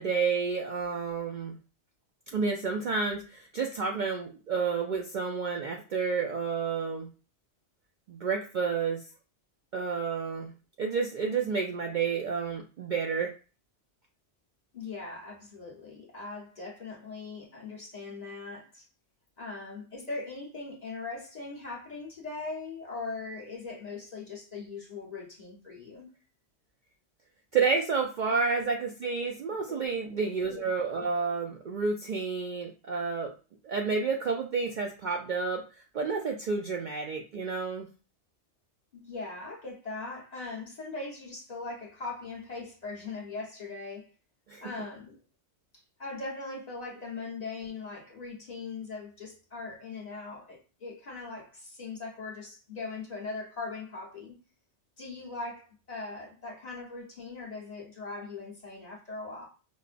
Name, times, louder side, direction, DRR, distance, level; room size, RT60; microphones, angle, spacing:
voice 1, 0.0-1.6 2.3-7.1 8.1-9.0 9.7-10.5 10.8-13.3 27.5-33.3 33.6-37.9 44.5-44.6, right 5 dB, 60° right, 0.5 m, -30 dB
voice 2, 14.7-18.8 19.4-26.1 29.2-30.7 38.9-44.1 44.6-45.2 46.0-54.4 55.0-59.5, left 3 dB, 35° left, 1.0 m, -40 dB
5.2 x 2.1 x 2.5 m
omnidirectional pair, 1.2 m